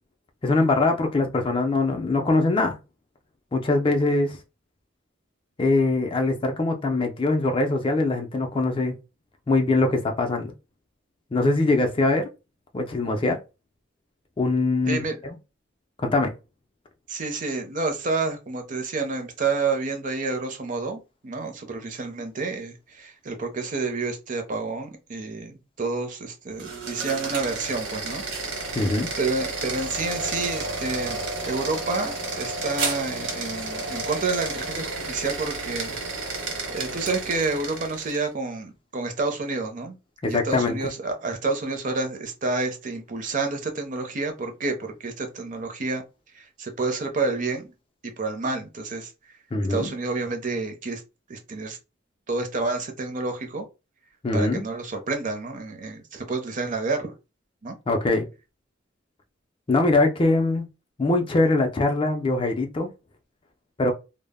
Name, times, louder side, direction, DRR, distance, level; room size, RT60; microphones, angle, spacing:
voice 1, 0.4-2.8 3.5-4.4 5.6-9.0 9.5-10.5 11.3-12.3 12.7-13.4 14.4-15.4 16.0-16.3 28.7-29.1 40.2-40.8 49.5-49.9 54.2-54.6 57.9-58.3 59.7-60.7 61.0-62.9 63.8-63.9, left 2 dB, 25° left, 0.4 m, -22 dB
voice 2, 14.9-15.2 17.1-28.2 28.6-28.7 29.2-36.0 36.7-40.0 40.3-46.0 46.3-47.7 48.0-49.1 49.7-51.0 51.3-51.8 52.3-53.6 54.3-57.1 57.6-57.8, right 3 dB, 40° right, 0.5 m, -29 dB
sound 1, 26.5-38.3, right 3 dB, 75° right, 0.9 m, -31 dB
2.0 x 2.0 x 3.4 m
head